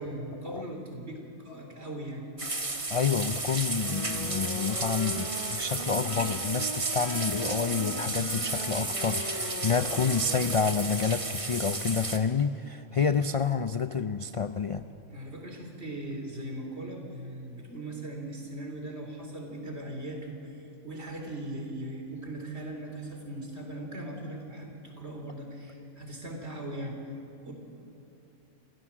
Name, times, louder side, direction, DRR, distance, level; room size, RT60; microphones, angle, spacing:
voice 1, 0.0-2.3 15.1-27.0 27.4-27.5, right 1 dB, 60° right, 1 dB, 4.0 m, -39 dB
sound 1, 2.4-12.2, right 2 dB, 25° right, 1.5 m, -33 dB
voice 2, 2.9-14.9, left 5 dB, 45° left, 10 dB, 0.4 m, -29 dB
Wind instrument woodwind instrument, 3.8-10.9, equal, 70° left, 7.4 m, -40 dB
28.0 x 16.0 x 7.4 m, 3.0 s
omnidirectional pair, 1.3 m